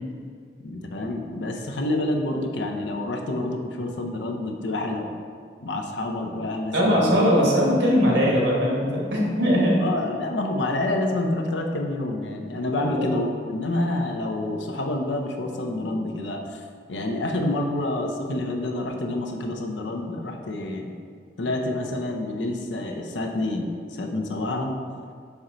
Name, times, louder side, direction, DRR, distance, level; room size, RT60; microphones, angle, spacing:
voice 1, 0.6-5.1 5.6-7.2 9.8-21.0 21.4-25.0, left 2 dB, 90° left, 3 dB, 0.7 m, -28 dB
voice 2, 6.7-9.8 12.8-13.0, equal, 80° right, -3 dB, 1.4 m, -20 dB
5.5 x 4.6 x 3.8 m, 2.1 s
head